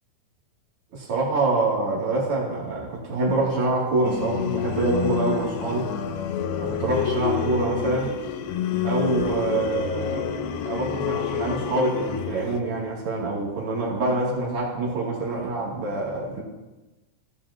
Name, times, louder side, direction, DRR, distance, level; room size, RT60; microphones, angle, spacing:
voice 1, 0.9-5.9 6.6-8.1 8.8-16.4, right 2 dB, 40° right, -5 dB, 3.2 m, -26 dB
sound 1, 4.0-12.6, left 8 dB, 85° left, 2.6 m, -28 dB
17.5 x 7.6 x 2.9 m, 1.1 s
omnidirectional pair, 4.4 m